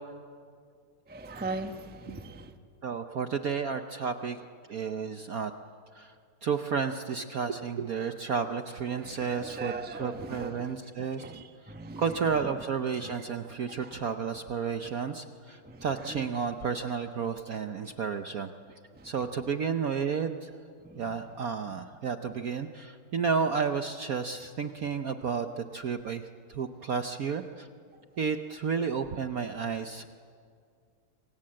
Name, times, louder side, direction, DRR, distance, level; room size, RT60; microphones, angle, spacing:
voice 1, 1.1-2.5 8.9-10.7 11.2-12.0 13.0-13.1 13.8-14.0 15.6-16.3 18.9-19.1 20.8-21.0, right 3 dB, 10° right, 0.4 m, -40 dB
voice 2, 2.8-4.4 4.7-5.5 5.9-6.1 6.4-11.3 11.6-18.5 19.0-20.5 21.0-27.7 28.2-30.1, right 6 dB, 60° right, 0.9 m, -32 dB
27.0 x 25.5 x 7.7 m
omnidirectional pair, 2.4 m